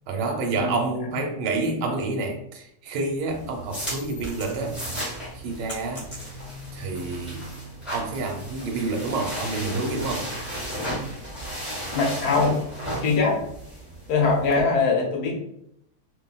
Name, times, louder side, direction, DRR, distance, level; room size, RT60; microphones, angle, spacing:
voice 1, 0.1-4.8 5.3-6.1 6.7-7.5 7.9-10.3, right 3 dB, 80° right, 2 dB, 1.3 m, -28 dB
sound 1, 3.3-14.6, equal, ahead, 0.6 m, -35 dB
sound 2, 3.9-4.9 5.2-6.7, right 1 dB, 30° left, 0.9 m, -39 dB
voice 2, 11.9-12.6 13.0-13.4 14.1-15.4, left 4 dB, 70° left, 0 dB, 1.0 m, -22 dB
2.7 x 2.4 x 2.2 m, 0.75 s
omnidirectional pair, 1.9 m